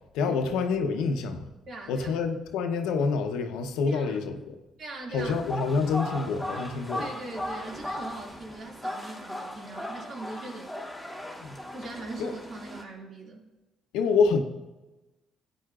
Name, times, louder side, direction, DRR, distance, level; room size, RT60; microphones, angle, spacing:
voice 1, 0.1-1.4 1.9-4.6 5.1-7.1 11.4-11.5 12.2-12.3 13.9-14.4, left 5 dB, 85° left, 5 dB, 0.9 m, -27 dB
voice 2, 1.7-2.1 3.9-4.3 4.8-5.4 7.0-10.7 11.7-13.5, right 2 dB, 55° right, 0 dB, 2.2 m, -41 dB
sound 1, 5.2-12.8, left 1 dB, 5° right, 2.4 m, -37 dB
13.5 x 9.2 x 2.4 m, 1.1 s
supercardioid pair, 75°, 0 cm